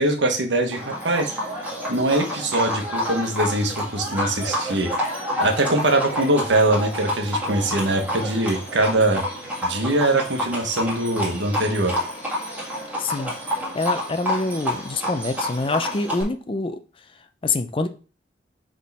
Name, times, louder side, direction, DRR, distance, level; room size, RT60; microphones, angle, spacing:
voice 1, 0.0-1.3 1.9-4.9 5.4-9.2 9.6-12.0, right 1 dB, 85° right, 1.3 m, -22 dB
Livestock farm animals working animals, 0.7-16.2, left 1 dB, 10° right, 1.8 m, -29 dB
voice 2, 13.0-13.3 13.7-16.8 17.4-17.9, left 3 dB, 30° left, 0.5 m, -25 dB
6.3 x 3.7 x 4.1 m
head